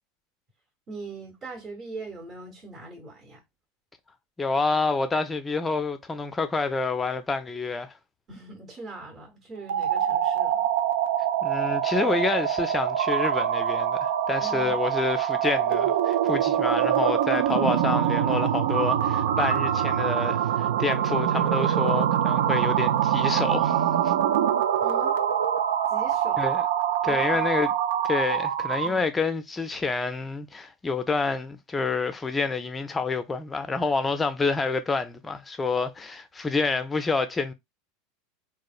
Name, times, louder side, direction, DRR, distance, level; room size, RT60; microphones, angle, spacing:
voice 1, 0.9-3.4 8.3-10.7 14.4-14.8 24.8-25.2 25.9-26.5 27.0-27.5 28.8-29.0, right 3 dB, 30° right, 0.8 m, -41 dB
voice 2, 4.4-7.9 11.4-23.8 24.0-24.1 26.4-26.6 27.0-27.7 28.1-37.5, left 4 dB, 15° left, 0.4 m, -28 dB
sound 1, 9.6-29.0, right 10 dB, 85° right, 0.3 m, -24 dB
3.0 x 2.1 x 2.4 m
supercardioid pair, 120°, 0 cm